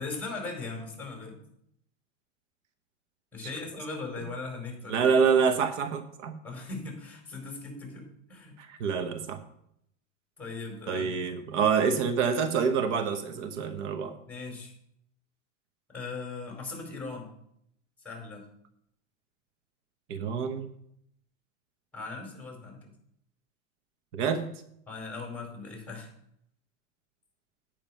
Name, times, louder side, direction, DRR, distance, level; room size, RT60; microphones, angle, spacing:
voice 1, 0.0-1.4 3.3-5.1 6.4-8.6 10.4-11.1 14.3-14.7 15.9-17.3 18.0-18.5 21.9-22.9 24.9-26.1, left 3 dB, 5° left, 0 dB, 4.5 m, -39 dB
voice 2, 4.9-6.3 8.6-9.4 10.9-14.2 20.1-20.7 24.1-24.4, right 6 dB, 70° right, 8 dB, 1.3 m, -26 dB
9.1 x 7.1 x 5.7 m, 0.73 s
supercardioid pair, 140°, 37 cm